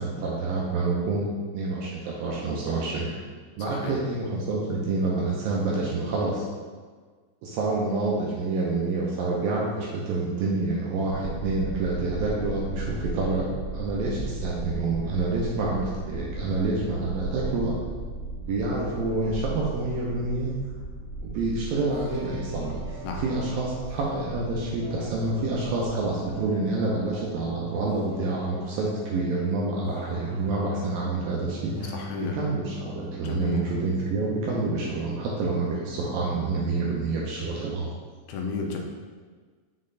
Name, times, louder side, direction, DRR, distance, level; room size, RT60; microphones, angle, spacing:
voice 1, 0.0-3.2 3.6-6.4 7.4-17.8 18.4-20.5 21.2-31.9 32.2-37.9, right 3 dB, 80° right, -3 dB, 2.2 m, -28 dB
voice 2, 3.6-4.0 23.0-23.3 31.9-32.4 33.2-33.7 38.3-38.8, left 4 dB, 80° left, 2 dB, 2.4 m, -32 dB
sound 1, 11.1-27.5, right 2 dB, 45° left, 1.6 m, -36 dB
sound 2, 21.9-35.6 35.9-37.1, equal, 50° right, 1.8 m, -40 dB
6.4 x 4.0 x 3.9 m, 1.5 s
omnidirectional pair, 4.8 m